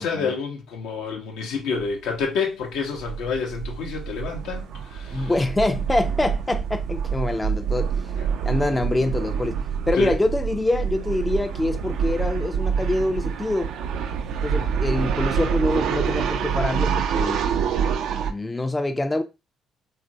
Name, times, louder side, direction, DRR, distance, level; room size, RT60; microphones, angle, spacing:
voice 1, 0.0-5.3 10.0-10.2, left 5 dB, 75° left, 0.6 m, -28 dB
sound 1, 1.8-1.9 2.2-2.3 2.6-18.3, right 7 dB, 70° right, 0.3 m, -26 dB
voice 2, 5.1-7.9 8.4-13.7 14.4-17.4 18.2-19.2, left 2 dB, 20° left, 0.4 m, -25 dB
3.0 x 2.4 x 2.6 m
hypercardioid pair, 50°, 0 cm